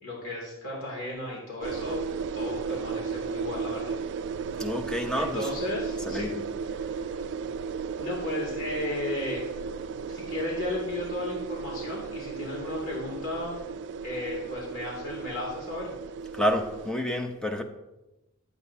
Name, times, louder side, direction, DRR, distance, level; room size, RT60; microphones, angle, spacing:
voice 1, 0.0-2.0 2.3-3.9 5.1-6.3 6.7-7.2 8.0-9.5 10.1-13.6 14.0-15.9, left 1 dB, 65° left, -3 dB, 2.5 m, -34 dB
sound 1, 1.6-16.9, right 5 dB, 55° right, 0.3 m, -35 dB
voice 2, 4.6-5.4 6.0-6.4 16.3-17.6, equal, 5° left, 5 dB, 0.7 m, -29 dB
12.0 x 8.1 x 2.7 m, 0.98 s
head